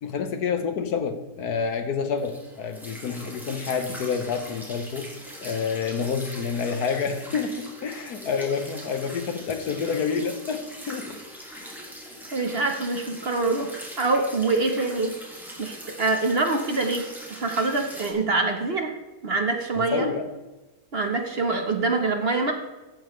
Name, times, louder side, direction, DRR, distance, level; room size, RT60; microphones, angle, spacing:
voice 1, 0.0-5.1 5.4-11.2 11.5-11.7 19.8-20.3, left 6 dB, 75° left, 8 dB, 1.5 m, -28 dB
sound 1, 2.2-18.1, equal, ahead, 2.0 m, -41 dB
voice 2, 12.3-15.1 15.6-18.9 19.2-20.1 20.9-22.5, right 3 dB, 40° right, 4 dB, 1.1 m, -25 dB
15.0 x 7.0 x 3.1 m, 1.2 s
omnidirectional pair, 1.7 m